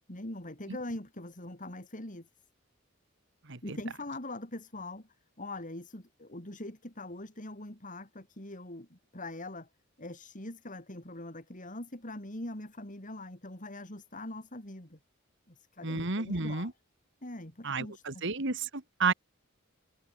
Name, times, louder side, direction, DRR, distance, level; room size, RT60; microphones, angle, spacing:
voice 1, 0.1-2.3 3.6-5.1 5.4-9.7 10.0-15.0 15.5-16.7 17.2-18.2, left 1 dB, 40° left, 5.5 m, -42 dB
voice 2, 15.8-16.7 17.6-19.1, right 4 dB, 65° right, 2.2 m, -31 dB
open air
head